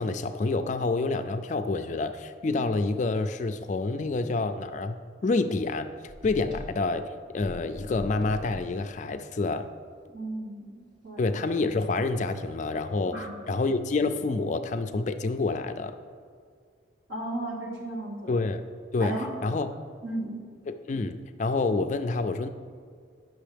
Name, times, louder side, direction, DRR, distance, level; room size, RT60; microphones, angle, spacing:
voice 1, 0.0-5.0 5.2-5.9 6.2-7.0 7.3-9.7 11.2-16.0 18.3-18.6 18.9-19.1 19.4-19.7 20.7-22.5, left 3 dB, 40° left, 9 dB, 0.3 m, -28 dB
Klopfen Autoscheibe, 6.1-6.9 7.4-8.8, equal, 25° right, 1.4 m, -40 dB
voice 2, 10.1-11.2 13.0-13.5 17.1-18.3 19.0-19.3 20.0-20.4, right 1 dB, 65° right, -4 dB, 1.9 m, -35 dB
10.0 x 6.2 x 3.4 m, 2.1 s
head